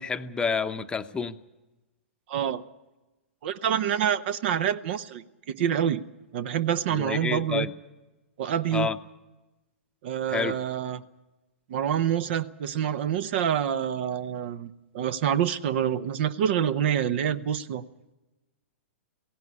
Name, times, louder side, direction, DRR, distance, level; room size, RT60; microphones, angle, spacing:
voice 1, 0.0-1.4 6.9-7.7 8.7-9.0 10.3-10.6, left 5 dB, 15° left, 8 dB, 0.8 m, -29 dB
voice 2, 2.3-2.6 3.4-6.0 6.3-7.7 8.4-8.9 10.0-11.0 11.7-17.8, right 9 dB, 55° right, 15 dB, 0.9 m, -27 dB
17.5 x 16.0 x 9.7 m, 1.1 s
hypercardioid pair, 115°, 7 cm